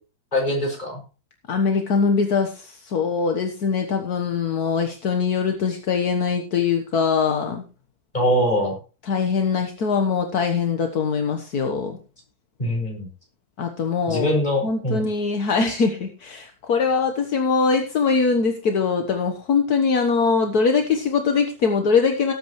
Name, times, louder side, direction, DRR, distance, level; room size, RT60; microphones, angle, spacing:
voice 1, 0.3-1.0 8.1-8.8 12.6-13.1 14.1-15.1 15.7-15.8, equal, 25° left, -1 dB, 6.7 m, -23 dB
voice 2, 1.5-7.6 9.1-12.0 13.6-14.3 14.6-22.3, left 5 dB, 70° left, 5 dB, 1.7 m, -22 dB
19.0 x 8.4 x 3.2 m, 0.34 s
omnidirectional pair, 1.7 m